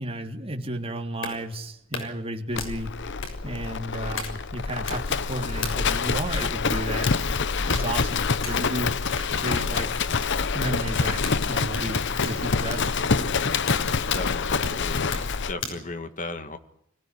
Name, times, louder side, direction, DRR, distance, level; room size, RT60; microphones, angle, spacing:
voice 1, 0.0-2.9 3.4-7.2 7.7-8.9 9.3-9.9 10.5-12.9, right 1 dB, 30° right, 2 dB, 3.0 m, -33 dB
sound 1, 0.7-15.9, left 3 dB, 80° left, 6.6 m, -38 dB
Livestock farm animals working animals, 2.5-15.6, left 5 dB, 60° left, 0.9 m, -26 dB
voice 2, 9.8-10.4 14.1-15.2 15.5-16.6, left 3 dB, 40° left, 9 dB, 2.1 m, -36 dB
25.5 x 16.5 x 9.7 m, 0.74 s
head